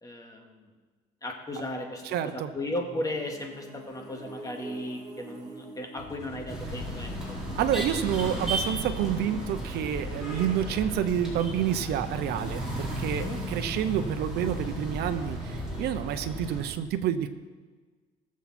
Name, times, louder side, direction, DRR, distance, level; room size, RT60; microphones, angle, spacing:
voice 1, 0.0-0.7 1.2-7.4 13.1-13.4, left 1 dB, 20° left, 2 dB, 2.1 m, -36 dB
voice 2, 2.1-2.5 7.5-17.3, right 10 dB, 75° right, 9 dB, 0.8 m, -29 dB
sound 1, 2.7-8.5, right 2 dB, 20° right, 2.7 m, -47 dB
sound 2, 6.0-11.4, left 5 dB, 75° left, 2.3 m, -46 dB
sound 3, 6.5-16.7, right 1 dB, 5° right, 4.2 m, -34 dB
20.0 x 7.3 x 4.4 m, 1.4 s
cardioid pair, 110°, 17 cm